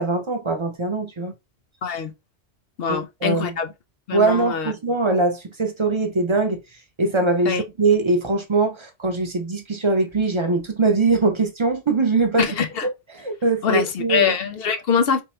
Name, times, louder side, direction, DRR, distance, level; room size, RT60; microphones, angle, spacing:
voice 1, 0.0-1.3 2.9-3.5 4.1-6.6 7.0-12.5 13.1-14.3, right 3 dB, 35° right, 0.5 m, -22 dB
voice 2, 2.8-3.7 4.1-4.7 7.5-7.6 12.4-12.9 13.6-15.2, left 6 dB, 65° left, 0.7 m, -23 dB
3.6 x 2.1 x 4.3 m
omnidirectional pair, 1.2 m